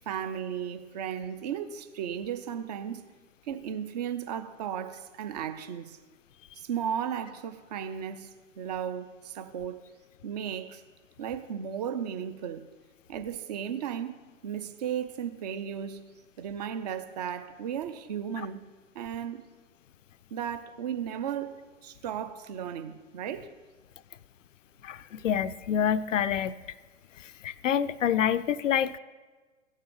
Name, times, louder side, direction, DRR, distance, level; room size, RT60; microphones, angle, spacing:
voice 1, 0.1-3.0 3.5-6.0 6.5-8.3 8.6-9.8 10.2-10.8 11.2-12.6 13.1-16.0 16.4-18.7 18.9-19.5 20.3-23.5, right 8 dB, 35° right, 0.6 m, -35 dB
voice 2, 24.8-26.6 27.4-29.0, left 9 dB, 75° left, 0.5 m, -27 dB
16.0 x 6.4 x 3.8 m
figure-of-eight pair, 115°, 39 cm